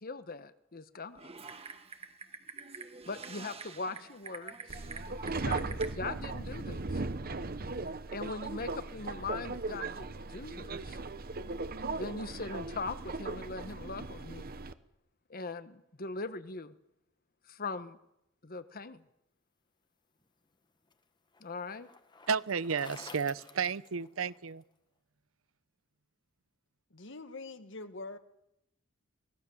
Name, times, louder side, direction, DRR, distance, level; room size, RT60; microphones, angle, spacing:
voice 1, 0.0-1.3 3.1-4.6 5.4-7.0 8.1-11.0 12.0-14.5 15.3-16.7 17.5-18.0 18.4-19.0 21.4-21.9, left 3 dB, 45° left, 12 dB, 1.2 m, -40 dB
Typing, 1.1-5.9, right 4 dB, 30° right, 1.6 m, -46 dB
Subway metro underground, 4.7-14.7, right 3 dB, 50° right, 1.0 m, -38 dB
Bicycle, 20.2-24.6, left 4 dB, 20° left, 1.1 m, -53 dB
voice 2, 22.3-24.6, right 6 dB, 85° right, 17 dB, 0.7 m, -32 dB
voice 3, 26.9-28.2, left 3 dB, 65° left, 10 dB, 1.6 m, -44 dB
23.5 x 18.5 x 7.2 m, 0.85 s
head